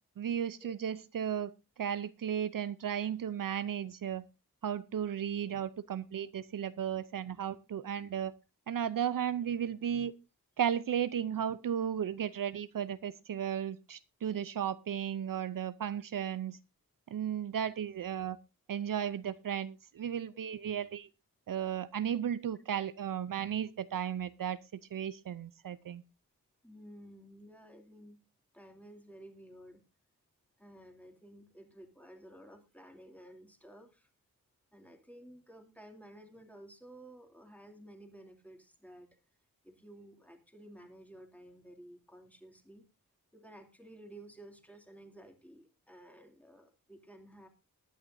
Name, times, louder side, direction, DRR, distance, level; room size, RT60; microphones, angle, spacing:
voice 1, 0.2-1.5 1.8-4.2 4.6-8.3 8.7-10.1 10.6-16.6 17.1-18.4 18.7-21.1 21.5-24.6 24.9-26.0, right 9 dB, 65° right, 0.6 m, -35 dB
voice 2, 26.6-28.2 28.5-29.8 30.6-34.1 34.7-39.1 39.6-42.9 43.3-47.5, right 1 dB, 5° left, 2.6 m, -54 dB
20.0 x 10.0 x 2.6 m
wide cardioid pair, 95°, 35 cm